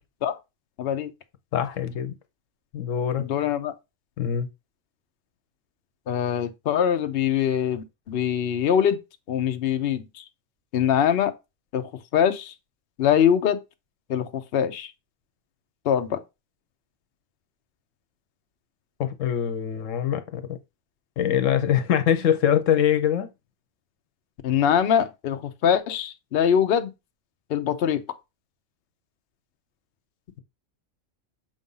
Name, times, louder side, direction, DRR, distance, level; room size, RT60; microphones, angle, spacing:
voice 1, 0.8-1.1 3.2-3.7 6.1-9.0 9.3-10.2 10.7-11.3 11.7-12.5 13.0-13.6 14.1-14.9 15.8-16.2 24.4-26.9 27.5-28.0, left 9 dB, 60° left, 0.8 m, -23 dB
voice 2, 1.5-2.1 2.7-3.3 4.2-4.5 19.0-20.6 21.2-23.3, left 9 dB, 85° left, 1.1 m, -23 dB
7.2 x 2.5 x 5.4 m
omnidirectional pair, 1.3 m